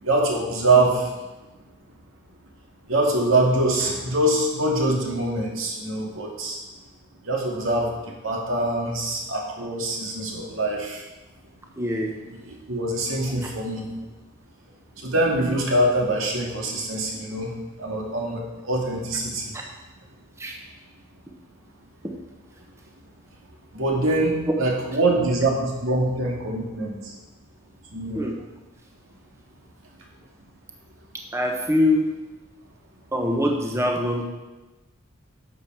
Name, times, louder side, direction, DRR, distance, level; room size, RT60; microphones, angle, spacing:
voice 1, 0.0-1.1 2.9-6.6 7.2-7.9 8.2-11.0 12.5-13.9 15.0-17.5 17.8-19.5 23.7-27.0 27.9-28.2, right 2 dB, 85° right, -2 dB, 2.3 m, -24 dB
voice 2, 11.8-12.1 19.5-19.6 20.4-20.5 22.0-22.1 28.1-28.3 31.3-32.1 33.1-34.3, left 1 dB, 15° right, 1 dB, 1.0 m, -23 dB
11.5 x 7.2 x 4.7 m, 1.1 s
head